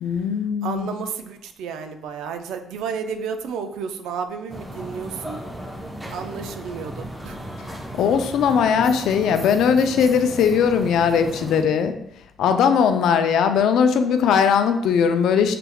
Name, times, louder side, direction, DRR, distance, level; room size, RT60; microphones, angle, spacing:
voice 1, 0.0-0.9 7.9-12.0 12.4-15.6, left 7 dB, 80° left, 8 dB, 0.4 m, -19 dB
voice 2, 0.6-5.4 6.1-7.4, right 6 dB, 90° right, 7 dB, 0.4 m, -32 dB
sound 1, 4.5-11.6, equal, 10° right, 0.8 m, -35 dB
5.7 x 3.5 x 2.3 m, 0.77 s
cardioid pair, 90°, 0 cm